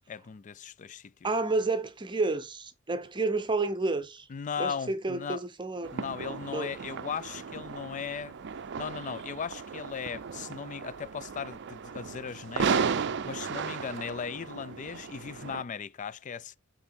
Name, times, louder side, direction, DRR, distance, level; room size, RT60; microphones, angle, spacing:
voice 1, 0.1-1.1 4.3-5.4 5.9-8.3 8.8-16.6, left 6 dB, 35° left, 0.4 m, -37 dB
voice 2, 1.2-4.3 4.6-5.9 6.5-6.7, right 3 dB, 20° right, 0.7 m, -30 dB
sound 1, 5.8-15.6, right 6 dB, 55° right, 0.5 m, -35 dB
8.4 x 3.8 x 4.3 m
head